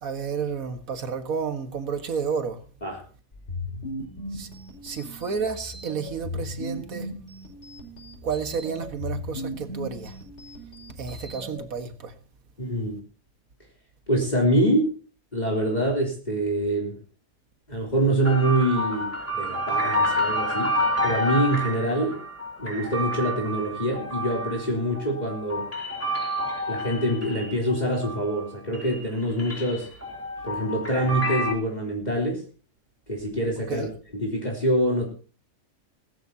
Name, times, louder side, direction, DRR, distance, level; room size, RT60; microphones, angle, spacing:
voice 1, 0.0-2.6 4.3-4.5 4.8-7.2 8.2-10.2 11.0-12.2 33.7-33.9, right 6 dB, 75° right, 1.9 m, -31 dB
sound 1, 3.3-11.6, left 1 dB, 50° left, 5.2 m, -37 dB
voice 2, 12.6-13.0 14.1-14.9 15.3-17.0 17.7-20.8 21.0-22.2 22.6-25.7 26.7-29.9 30.4-32.4 33.1-33.9 34.1-35.1, right 1 dB, 30° left, 3.6 m, -25 dB
sound 2, 18.2-28.5 28.7-31.5, equal, 10° left, 3.3 m, -29 dB
21.0 x 14.0 x 2.8 m
omnidirectional pair, 1.5 m